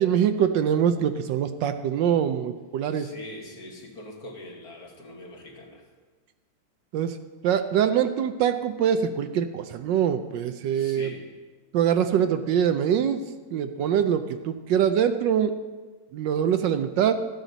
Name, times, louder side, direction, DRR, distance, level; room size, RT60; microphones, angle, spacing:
voice 1, 0.0-3.1 6.9-7.2 7.4-11.1 11.7-13.2 13.5-15.5 16.1-17.1, right 8 dB, 75° right, 9 dB, 1.2 m, -24 dB
voice 2, 2.9-5.8 10.7-11.3, left 1 dB, 50° left, 0 dB, 1.9 m, -42 dB
14.5 x 9.1 x 4.0 m, 1.3 s
omnidirectional pair, 2.1 m